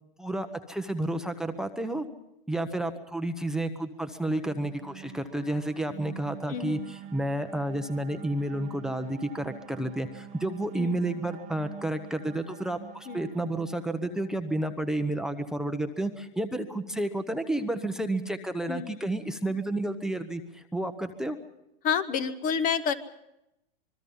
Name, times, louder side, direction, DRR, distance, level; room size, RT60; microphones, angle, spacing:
voice 1, 0.2-2.0 2.5-21.4, right 1 dB, ahead, 9 dB, 1.0 m, -31 dB
sound 1, 4.1-14.6, right 10 dB, 25° right, 0.8 m, -47 dB
voice 2, 6.5-6.9 10.8-11.0 13.1-13.2 18.7-19.0 21.8-22.9, left 7 dB, 30° left, 11 dB, 1.2 m, -29 dB
26.0 x 21.5 x 5.6 m, 0.85 s
hypercardioid pair, 130°, 29 cm